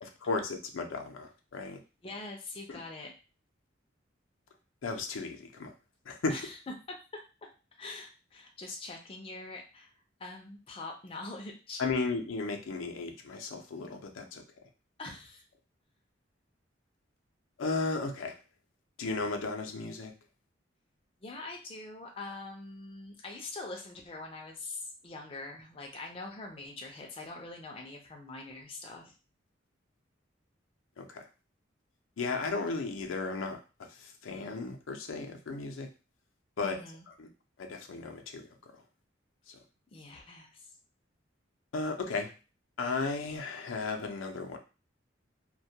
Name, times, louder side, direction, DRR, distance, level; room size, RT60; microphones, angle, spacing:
voice 1, 0.0-1.8 2.7-2.8 4.8-5.7 6.1-6.3 11.8-14.4 17.6-18.4 19.0-20.1 31.0-31.2 32.2-35.9 36.6-36.8 37.1-37.3 37.6-38.5 39.5-39.6 41.7-42.3 42.8-44.6, left 3 dB, 90° left, 3 dB, 0.5 m, -35 dB
voice 2, 2.0-3.1 6.3-6.6 6.9-7.2 7.8-9.9 10.2-11.8 15.0-15.4 21.2-29.1 36.6-37.0 39.9-40.7, left 3 dB, 30° left, 0 dB, 0.4 m, -43 dB
2.2 x 2.1 x 2.7 m, 0.32 s
head